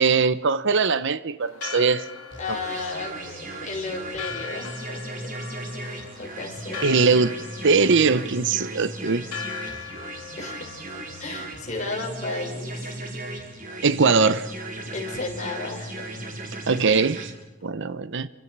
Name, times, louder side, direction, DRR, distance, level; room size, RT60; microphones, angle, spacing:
voice 1, 0.0-2.0 2.5-2.6 6.8-7.3 7.6-9.3 13.8-14.5 16.7-17.3 17.6-18.3, right 4 dB, 60° right, 0.8 m, -21 dB
Church bell, 1.4-13.0, left 6 dB, 85° left, 2.3 m, -40 dB
sound 1, 2.3-17.3, right 2 dB, 40° right, 4.2 m, -36 dB
voice 2, 2.4-5.0 5.7-6.9 9.6-10.0 10.4-10.7 11.2-13.0 14.9-16.1, left 3 dB, 35° left, 5.3 m, -34 dB
29.0 x 25.0 x 6.1 m
head